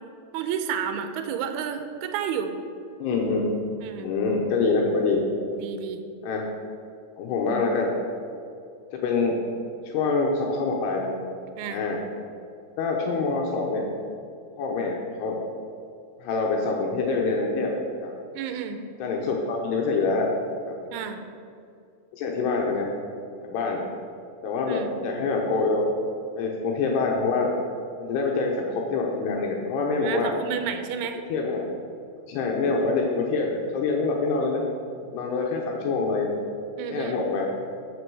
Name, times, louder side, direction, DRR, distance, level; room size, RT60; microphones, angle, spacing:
voice 1, 0.3-2.5 3.8-4.1 5.6-6.0 11.6-11.8 18.3-18.9 20.9-21.2 24.7-24.9 30.0-31.2 36.8-37.2, right 7 dB, 80° right, 7 dB, 2.6 m, -31 dB
voice 2, 3.0-3.6 4.0-5.2 6.2-6.4 7.2-7.9 8.9-9.3 9.8-11.1 11.7-12.0 12.8-13.8 14.6-15.4 16.2-17.7 18.0-18.1 19.0-20.3 20.6-20.7 22.2-22.9 23.4-23.8 24.4-25.9 26.4-27.5 28.0-30.3 31.3-31.7 32.3-34.6 35.1-36.3 36.9-37.5, left 4 dB, 80° left, -1 dB, 2.9 m, -25 dB
14.5 x 6.2 x 4.7 m, 2.4 s
omnidirectional pair, 4.8 m